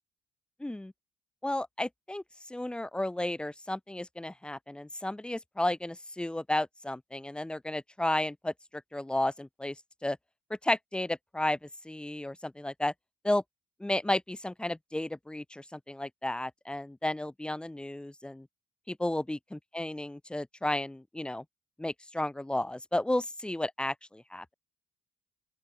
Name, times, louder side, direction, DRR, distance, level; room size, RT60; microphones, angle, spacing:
voice 1, 0.6-0.9 1.4-2.2 2.5-9.8 10.0-10.2 10.6-12.9 13.2-13.4 13.8-18.5 18.9-21.4 21.8-24.5, left 1 dB, 10° left, 1.0 m, -33 dB
open air
hypercardioid pair, 55°, 11 cm